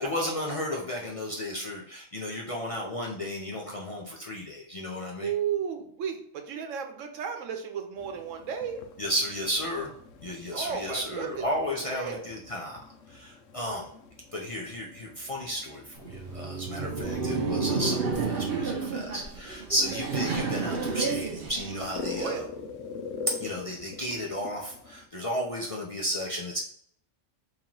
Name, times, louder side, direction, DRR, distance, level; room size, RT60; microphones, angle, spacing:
voice 1, 0.0-5.3 9.0-9.9 10.2-12.8 13.1-13.9 14.3-22.4 23.3-26.6, equal, 45° left, -3 dB, 0.5 m, -33 dB
voice 2, 5.2-8.8 10.5-11.4 11.8-12.3 19.9-20.0 22.0-22.5, right 7 dB, 85° right, 5 dB, 1.1 m, -34 dB
sound 1, 8.0-25.1, left 4 dB, 85° left, 0.9 m, -45 dB
Laughter, 16.0-22.3, right 4 dB, 60° right, 0.7 m, -31 dB
2.9 x 2.9 x 3.8 m, 0.65 s
omnidirectional pair, 1.3 m